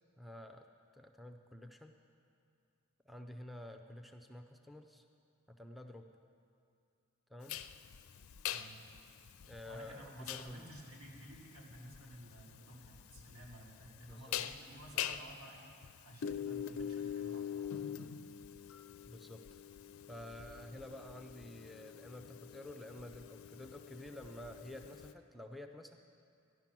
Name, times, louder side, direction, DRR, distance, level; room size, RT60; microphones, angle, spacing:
voice 1, 0.2-0.7 0.9-2.0 3.0-5.0 5.5-6.2 7.3-7.6 9.5-10.7 14.0-14.4 14.9-15.2 19.1-19.4 20.1-26.0, left 1 dB, ahead, 5 dB, 0.5 m, -50 dB
sound 1, 7.5-25.1, left 9 dB, 70° left, 0.5 m, -44 dB
voice 2, 8.5-8.8 9.6-17.7 20.5-20.6, right 1 dB, 90° right, -3 dB, 2.8 m, -54 dB
14.0 x 11.0 x 6.0 m, 2.4 s
head